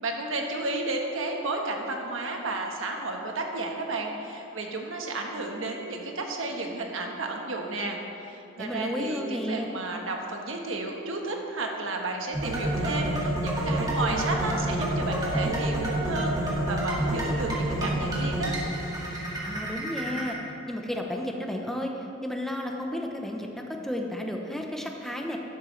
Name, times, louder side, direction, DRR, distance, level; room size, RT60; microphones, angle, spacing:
voice 1, 0.0-18.5, right 2 dB, 80° right, 1 dB, 1.3 m, -32 dB
voice 2, 8.6-9.7 19.4-20.4 20.7-25.4, left 1 dB, ahead, 1 dB, 0.8 m, -32 dB
sound 1, 12.3-20.3, right 1 dB, 20° right, 1.9 m, -28 dB
12.5 x 11.0 x 3.3 m, 2.8 s
head